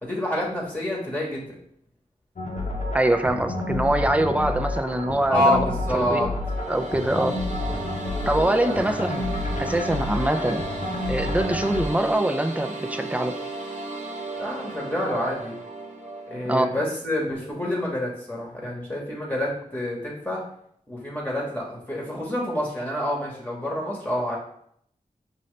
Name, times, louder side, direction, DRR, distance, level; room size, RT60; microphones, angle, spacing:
voice 1, 0.0-1.6 5.3-6.3 8.6-8.8 14.4-15.6 16.3-20.4 20.9-24.4, left 1 dB, 10° left, -4 dB, 1.2 m, -27 dB
sound 1, 2.4-11.9, left 2 dB, 60° left, 0.8 m, -30 dB
voice 2, 2.9-5.6 5.9-6.2 6.7-7.4 8.3-9.3 9.6-10.6 11.1-13.4 16.5-16.7, right 1 dB, 10° right, 7 dB, 0.4 m, -24 dB
sound 2, 6.4-16.6, right 2 dB, 55° right, 0.9 m, -34 dB
5.3 x 2.8 x 3.2 m, 0.68 s
cardioid pair, 50°, 14 cm